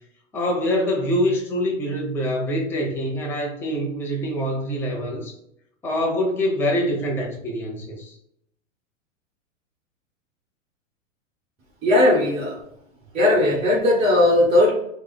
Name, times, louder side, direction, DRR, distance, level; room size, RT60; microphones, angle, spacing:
voice 1, 0.3-5.3 5.8-8.2, equal, 5° left, -1 dB, 0.4 m, -25 dB
voice 2, 11.8-12.6 13.1-14.7, left 1 dB, 15° right, -5 dB, 0.8 m, -17 dB
3.2 x 2.0 x 3.1 m, 0.75 s
hypercardioid pair, 105°, 39 cm